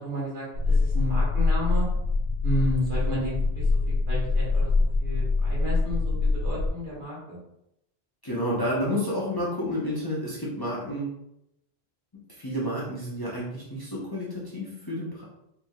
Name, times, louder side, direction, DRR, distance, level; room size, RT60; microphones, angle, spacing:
voice 1, 0.0-1.9 2.4-7.4, equal, 55° right, -6 dB, 1.5 m, -32 dB
sound 1, 0.5-6.7, left 3 dB, 65° left, 0.9 m, -24 dB
voice 2, 8.2-11.1 12.3-15.2, equal, 25° left, -6 dB, 0.8 m, -30 dB
4.1 x 3.4 x 2.3 m, 0.81 s
omnidirectional pair, 1.1 m